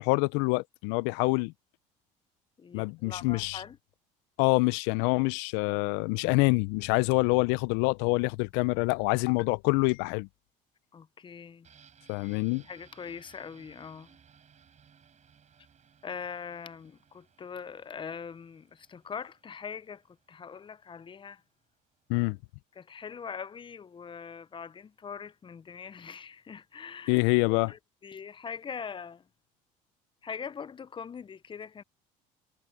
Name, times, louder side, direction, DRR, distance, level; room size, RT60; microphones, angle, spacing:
voice 1, 0.0-1.5 2.7-3.6 4.4-10.3 12.1-12.6 22.1-22.4 27.1-27.7, left 26 dB, 80° left, 0.6 m, -26 dB
voice 2, 2.6-3.8 10.9-11.7 12.7-14.2 16.0-21.4 22.8-27.2 27.7-29.3 30.2-31.8, left 6 dB, 25° left, 0.6 m, -42 dB
sound 1, 11.6-21.3 21.6-21.7, right 7 dB, 40° right, 7.9 m, -61 dB
supercardioid pair, 85°, 18 cm